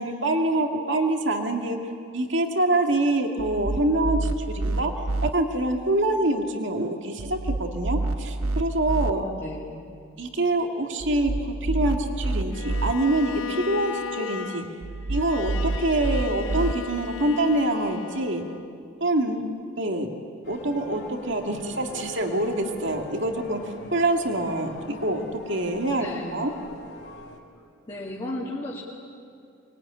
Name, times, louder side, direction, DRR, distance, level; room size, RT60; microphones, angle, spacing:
voice 1, 0.0-1.8 2.1-4.9 5.2-9.2 10.2-14.7 15.1-18.4 19.0-19.4 19.8-20.1 20.5-26.5, right 1 dB, 60° right, 3 dB, 2.3 m, -25 dB
sound 1, 3.4-5.3 7.2-9.1 11.0-12.9 14.8-16.7, right 2 dB, 85° right, 0.9 m, -28 dB
voice 2, 9.1-9.8 25.9-26.5 27.9-28.8, left 1 dB, 25° left, -5 dB, 2.4 m, -35 dB
Bowed string instrument, 12.5-18.8, left 5 dB, 70° left, 0.7 m, -37 dB
sound 2, 20.4-27.4, left 1 dB, 50° left, 2.8 m, -42 dB
24.0 x 21.5 x 9.8 m, 2.4 s
head